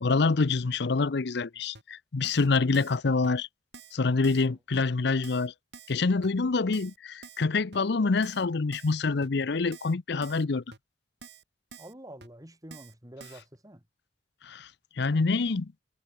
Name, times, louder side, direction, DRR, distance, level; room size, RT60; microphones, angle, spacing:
voice 1, 0.0-3.5 3.9-5.5 5.9-10.6 14.4-14.7 15.0-15.7, left 4 dB, 60° left, 0.6 m, -26 dB
Keyboard (musical), 1.7-1.8 2.2-2.5 2.7-3.0 3.2-3.3 3.7-4.0 4.2-4.5 4.7-4.8 5.2-5.5 5.7-6.0 6.2-6.3 6.7-7.0 7.2-7.4 7.7-7.8 8.2-8.4 8.7-9.0 9.2-9.3 9.7-9.9 10.2-10.4 10.7-10.8 11.2-11.4 11.7-11.9 12.2-12.3 12.7-12.9 13.2-13.4, right 5 dB, 65° right, 6.2 m, -48 dB
voice 2, 11.8-13.8, right 1 dB, 20° right, 5.3 m, -47 dB
head